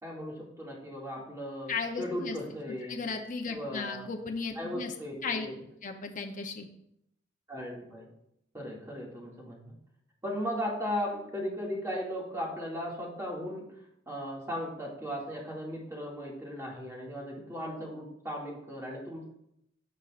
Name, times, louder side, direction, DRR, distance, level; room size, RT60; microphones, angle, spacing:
voice 1, 0.0-3.0 3.5-4.1 4.6-5.6 7.5-8.1 8.5-9.7 10.2-13.7 14.1-19.2, equal, 15° right, -4 dB, 2.2 m, -37 dB
voice 2, 1.7-2.4 2.9-4.9 5.2-5.5 5.8-6.7, left 4 dB, 45° left, 3 dB, 0.7 m, -35 dB
15.0 x 5.2 x 2.5 m, 0.77 s
head